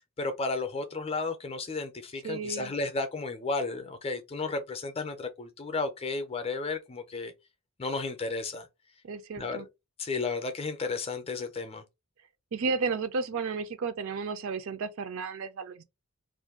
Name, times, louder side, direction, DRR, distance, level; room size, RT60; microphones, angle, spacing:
voice 1, 0.2-7.3 7.8-8.7 9.4-9.7 10.0-11.8, left 3 dB, 25° left, 0.5 m, -33 dB
voice 2, 2.2-2.7 9.0-9.7 12.5-15.8, right 4 dB, 65° right, 0.4 m, -33 dB
2.5 x 2.2 x 3.6 m
head